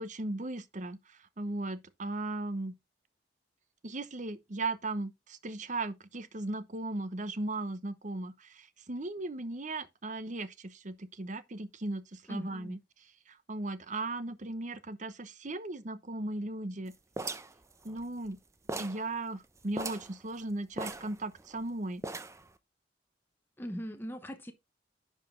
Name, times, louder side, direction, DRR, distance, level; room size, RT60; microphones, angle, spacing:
voice 1, 0.0-2.7 3.8-12.8 13.3-16.9 17.8-18.4 18.7-22.0, right 2 dB, 45° right, 0.9 m, -37 dB
voice 2, 12.3-12.8 23.6-24.5, equal, 10° left, 1.0 m, -40 dB
sound 1, 17.2-18.4 18.7-19.1 19.4-19.5 19.7-20.1 20.8-21.6 22.0-22.5, right 2 dB, 15° right, 0.7 m, -39 dB
10.5 x 5.0 x 3.8 m
head